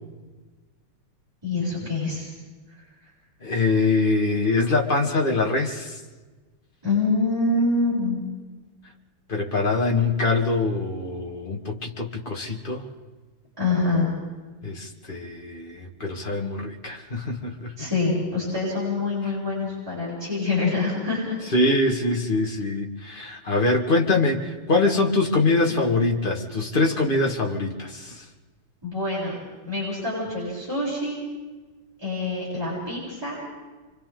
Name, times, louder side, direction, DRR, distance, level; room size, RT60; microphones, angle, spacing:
voice 1, 1.4-2.3 6.8-8.3 13.6-14.1 17.8-21.4 28.8-29.4 29.6-31.2 32.0-33.4, left 3 dB, 10° right, -9 dB, 7.5 m, -25 dB
voice 2, 3.4-6.0 9.3-12.9 14.6-17.9 21.5-28.3, left 3 dB, 25° left, 1 dB, 1.9 m, -24 dB
29.0 x 24.5 x 3.9 m, 1.3 s
omnidirectional pair, 2.4 m